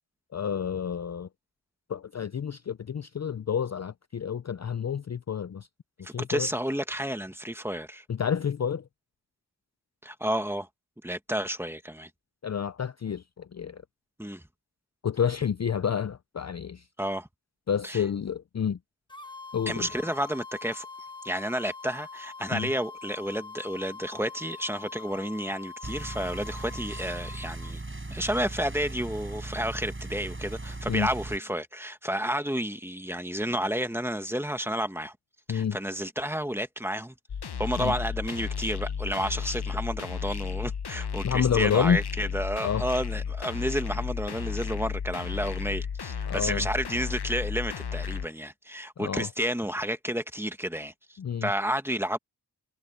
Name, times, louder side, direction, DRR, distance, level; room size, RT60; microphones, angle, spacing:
voice 1, 0.3-1.3 1.9-5.7 6.1-6.5 8.1-8.8 12.4-13.8 15.0-16.8 17.7-18.8 19.5-19.9 22.5-22.7 30.9-31.1 35.5-35.8 37.8-37.9 41.2-42.0 42.6-42.8 46.3-46.7 49.0-49.3 51.2-51.5, left 7 dB, 40° left, 0.5 m, -29 dB
voice 2, 6.0-8.0 10.0-10.7 11.0-12.1 14.2-14.4 17.0-17.3 17.8-18.0 19.7-20.8 21.2-27.8 28.1-35.1 35.5-37.1 37.6-52.2, equal, 5° right, 1.6 m, -31 dB
sound 1, 19.1-27.7, left 4 dB, 10° left, 1.4 m, -44 dB
sound 2, 25.8-31.4, right 2 dB, 30° right, 5.2 m, -38 dB
sound 3, 37.3-48.3, left 6 dB, 70° left, 1.0 m, -33 dB
wide cardioid pair, 65°, 41 cm